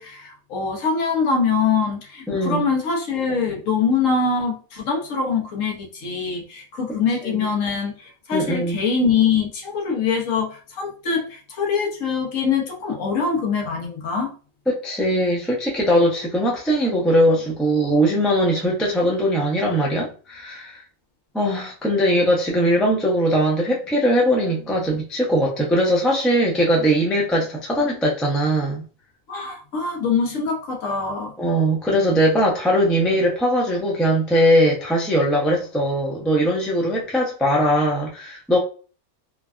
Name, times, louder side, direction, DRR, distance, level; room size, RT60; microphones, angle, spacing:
voice 1, 0.0-14.3 29.3-31.3, left 5 dB, 65° left, 1.1 m, -23 dB
voice 2, 2.3-2.6 7.2-7.5 8.3-8.8 14.7-20.8 21.3-28.8 31.4-38.6, equal, ahead, 0.3 m, -20 dB
3.3 x 2.2 x 2.4 m
omnidirectional pair, 1.6 m